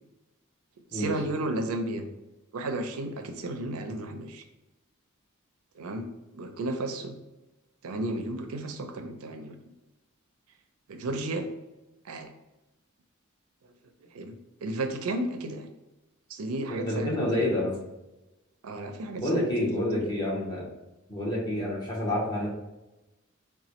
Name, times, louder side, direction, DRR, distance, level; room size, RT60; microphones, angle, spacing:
voice 1, 0.9-2.1 2.5-4.4 5.8-6.1 6.3-7.2 7.8-9.6 10.9-11.5 12.0-12.3 14.0-15.7 16.3-17.5 18.6-20.0, right 2 dB, 90° right, 7 dB, 0.5 m, -33 dB
voice 2, 16.7-17.7 19.2-20.6 21.1-22.5, left 1 dB, 20° left, -5 dB, 1.0 m, -28 dB
4.0 x 2.2 x 2.9 m, 1.0 s
head